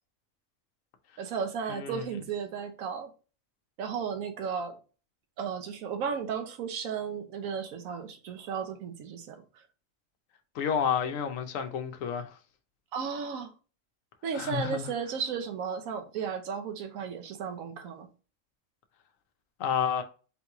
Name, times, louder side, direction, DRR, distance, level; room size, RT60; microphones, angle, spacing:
voice 1, 1.2-3.1 3.8-4.8 5.4-9.7 12.9-13.5 14.2-18.1, right 6 dB, 85° right, 1.2 m, -34 dB
voice 2, 1.7-2.0 10.5-12.4 14.3-14.9 19.6-20.0, left 8 dB, 75° left, 1.1 m, -30 dB
3.8 x 3.0 x 3.5 m
omnidirectional pair, 1.4 m